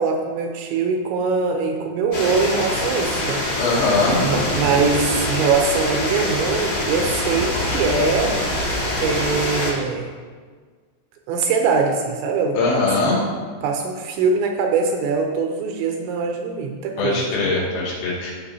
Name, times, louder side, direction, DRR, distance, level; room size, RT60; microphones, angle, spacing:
voice 1, 0.0-3.5 4.2-8.4 9.0-10.1 11.3-13.2 13.6-17.3, right 4 dB, 80° right, 3 dB, 2.8 m, -22 dB
sound 1, 2.1-9.7, left 1 dB, 30° left, 2.7 m, -25 dB
voice 2, 3.6-4.3 12.6-13.2 17.0-18.3, left 3 dB, 80° left, -5 dB, 4.8 m, -21 dB
sound 2, 3.9-9.3, left 1 dB, 65° left, 4.6 m, -33 dB
16.5 x 6.4 x 2.8 m, 1.5 s
omnidirectional pair, 5.7 m